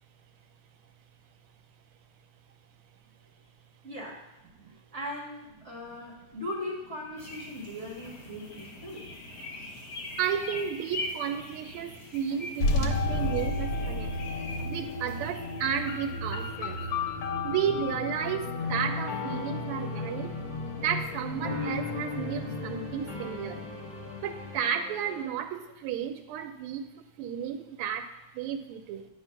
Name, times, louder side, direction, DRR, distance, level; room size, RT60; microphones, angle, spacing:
voice 1, 3.8-4.3 4.7-9.1, left 1 dB, 35° right, -3 dB, 1.9 m, -39 dB
sound 1, 7.2-17.1, left 2 dB, 55° left, 2.0 m, -43 dB
voice 2, 10.2-14.1 14.6-16.8 17.4-20.4 20.8-23.6 24.2-29.1, right 8 dB, 85° right, 6 dB, 1.5 m, -33 dB
sound 2, 12.6-24.6, left 2 dB, 85° left, 1.7 m, -33 dB
sound 3, 18.6-25.2, left 5 dB, 25° left, 1.3 m, -40 dB
8.9 x 3.8 x 5.7 m, 0.91 s
omnidirectional pair, 2.4 m